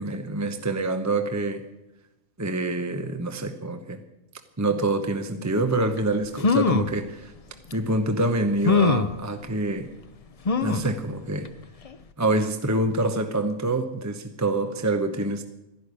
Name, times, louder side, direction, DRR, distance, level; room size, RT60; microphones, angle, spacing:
voice 1, 0.0-1.6 2.4-4.0 4.6-7.3 7.7-9.9 10.6-11.5 12.2-15.4, right 2 dB, 15° right, 7 dB, 0.8 m, -26 dB
sound 1, 6.0-6.1 6.4-7.0 7.7-7.8 8.6-9.2 10.5-10.9 11.4-11.5 11.8-11.9, left 4 dB, 40° left, 0.6 m, -22 dB
13.5 x 11.0 x 9.7 m, 0.97 s
omnidirectional pair, 1.4 m